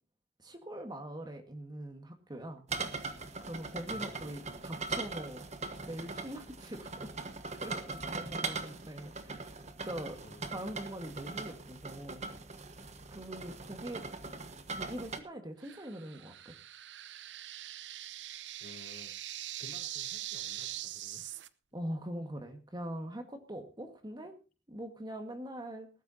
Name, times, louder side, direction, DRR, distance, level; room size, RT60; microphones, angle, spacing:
voice 1, 0.4-2.6 3.4-5.4 5.9-7.1 7.6-10.2 10.5-12.2 13.1-14.0 14.7-16.5 21.7-24.3 24.7-25.9, right 1 dB, 25° right, 6 dB, 1.7 m, -42 dB
sound 1, 2.7-15.2, right 4 dB, 40° right, 1.4 m, -41 dB
voice 2, 3.9-4.2 10.2-10.5 18.6-19.1 19.6-21.4, left 1 dB, 50° left, 2 dB, 4.3 m, -54 dB
sound 2, 15.6-21.5, right 13 dB, 80° right, 0.7 m, -42 dB
19.5 x 13.0 x 2.8 m, 0.31 s
head